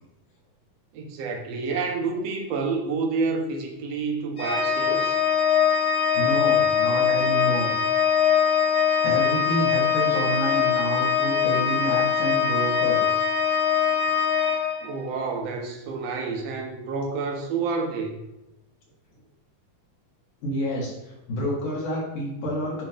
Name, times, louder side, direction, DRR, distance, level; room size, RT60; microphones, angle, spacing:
voice 1, 0.9-5.2 14.8-18.2, right 4 dB, 60° right, 1 dB, 1.9 m, -29 dB
Organ, 4.4-15.2, left 7 dB, 25° left, 1.2 m, -22 dB
voice 2, 6.1-7.7 9.0-13.2 20.4-21.0 21.3-22.8, equal, 65° left, -4 dB, 3.2 m, -28 dB
9.4 x 3.1 x 5.1 m, 0.92 s
omnidirectional pair, 3.9 m